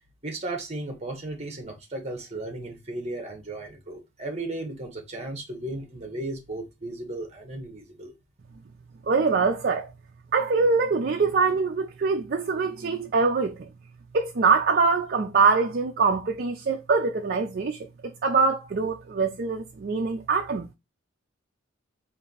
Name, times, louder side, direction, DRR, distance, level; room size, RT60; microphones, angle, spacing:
voice 1, 0.2-8.1, right 2 dB, 30° right, 1.0 m, -35 dB
voice 2, 9.1-9.9 10.3-13.7 14.1-20.7, right 4 dB, 50° right, 0.4 m, -24 dB
4.1 x 2.6 x 3.9 m
head